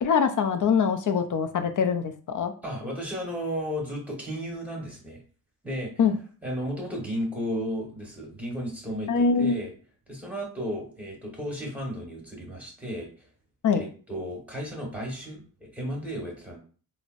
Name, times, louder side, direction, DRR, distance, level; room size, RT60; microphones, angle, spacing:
voice 1, 0.0-2.5 6.0-6.2 9.1-9.6 13.6-13.8, left 6 dB, 50° left, 8 dB, 0.5 m, -23 dB
voice 2, 2.6-5.2 5.6-5.9 6.4-9.7 10.1-13.1 13.7-16.6, equal, 5° right, -1 dB, 1.3 m, -34 dB
3.7 x 2.1 x 2.5 m, 0.40 s
cardioid pair, 75°, 38 cm